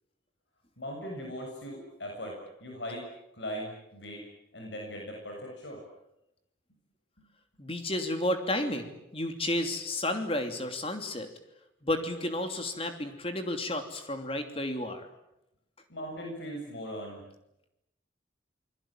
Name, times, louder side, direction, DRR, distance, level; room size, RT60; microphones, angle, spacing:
voice 1, 0.8-3.0 3.3-4.2 4.5-5.8 15.9-17.2, equal, 65° left, 0 dB, 7.3 m, -39 dB
voice 2, 7.6-11.3 11.8-15.1, left 1 dB, 30° left, 6 dB, 2.9 m, -32 dB
28.5 x 21.5 x 9.0 m, 0.87 s
head